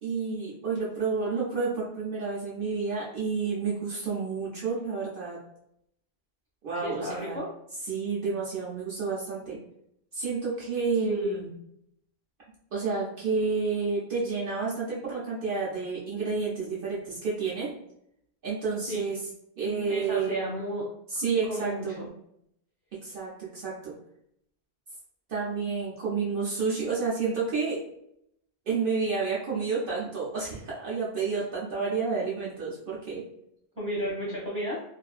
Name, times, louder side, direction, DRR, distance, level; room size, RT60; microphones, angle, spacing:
voice 1, 0.0-5.4 6.6-7.4 7.8-9.6 10.1-11.5 12.7-17.7 18.4-19.2 19.6-20.4 21.1-22.0 23.0-23.9 25.3-27.8 28.7-33.2, right 4 dB, 60° right, -6 dB, 0.8 m, -30 dB
voice 2, 6.8-7.5 11.0-11.4 18.9-19.1 19.9-20.8 21.5-22.1 33.8-34.8, equal, 15° left, -6 dB, 0.9 m, -32 dB
2.6 x 2.4 x 2.3 m, 0.75 s
omnidirectional pair, 1.1 m